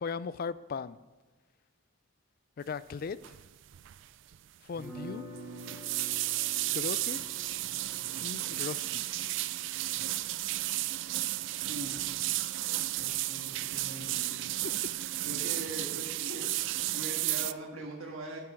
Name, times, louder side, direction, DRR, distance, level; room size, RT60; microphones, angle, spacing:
voice 1, 0.0-1.0 2.6-3.2 4.6-5.3 6.7-7.2 8.2-9.0 14.6-14.8, left 5 dB, 45° left, 17 dB, 0.3 m, -37 dB
sound 1, 3.2-3.5 3.7-4.0 4.3-4.4 5.4-17.5, right 16 dB, 60° right, 0.3 m, -33 dB
sound 2, 4.7-10.7, right 1 dB, 15° right, 3.2 m, -48 dB
voice 2, 13.0-14.4 15.2-16.4 16.9-18.4, right 2 dB, 85° right, -1 dB, 1.6 m, -41 dB
8.2 x 7.7 x 6.1 m, 1.3 s
head